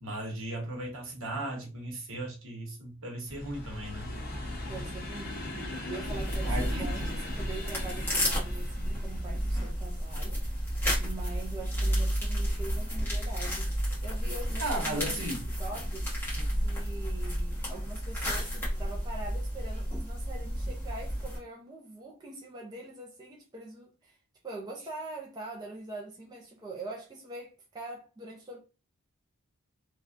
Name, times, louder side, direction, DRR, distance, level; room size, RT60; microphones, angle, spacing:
voice 1, 0.0-4.1 6.4-7.1 14.6-15.5 16.4-16.5, right 1 dB, 65° right, 1.1 m, -36 dB
sound 1, 3.3-14.4 15.0-15.7 16.6-16.8 17.1-17.2, left 1 dB, 45° left, 0.9 m, -41 dB
voice 2, 4.6-5.4 5.8-10.4 11.0-13.7 14.0-15.3 15.6-16.1 16.5-24.2 24.4-28.6, right 2 dB, 20° right, 0.5 m, -43 dB
sound 2, 6.0-21.4, equal, 10° left, 1.2 m, -31 dB
3.3 x 2.3 x 2.4 m
head